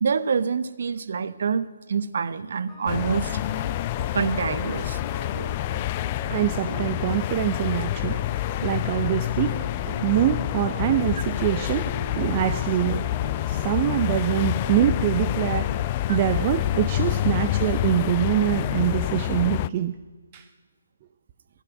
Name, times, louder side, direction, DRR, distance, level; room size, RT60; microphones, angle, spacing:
voice 1, 0.0-3.4 4.1-5.0 16.1-16.2, right 6 dB, 50° right, 15 dB, 0.9 m, -26 dB
sound 1, 2.7-18.8, equal, 10° left, 4.5 m, -41 dB
sound 2, 2.9-19.7, left 15 dB, 30° left, 0.4 m, -27 dB
voice 2, 6.3-8.2 8.6-9.5 9.9-13.0 13.5-15.7 16.1-20.0 20.3-20.4, right 12 dB, 30° right, 9 dB, 0.6 m, -24 dB
15.0 x 10.5 x 9.3 m, 1.4 s
figure-of-eight pair, 145°, 0 cm